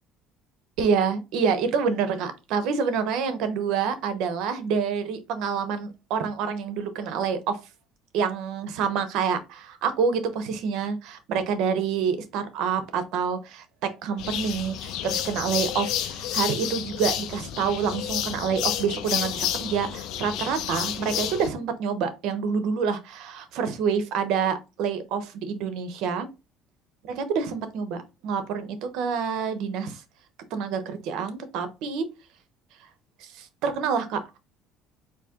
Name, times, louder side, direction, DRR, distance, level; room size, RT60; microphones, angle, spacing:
voice 1, 0.8-7.6 8.1-26.3 27.0-28.0 28.2-30.0 30.5-32.0 33.2-34.2, right 6 dB, 70° right, 10 dB, 0.9 m, -27 dB
sound 1, 14.2-21.5, left 11 dB, 65° left, 0.6 m, -30 dB
4.2 x 2.8 x 3.6 m, 0.26 s
cardioid pair, 120°, 0 cm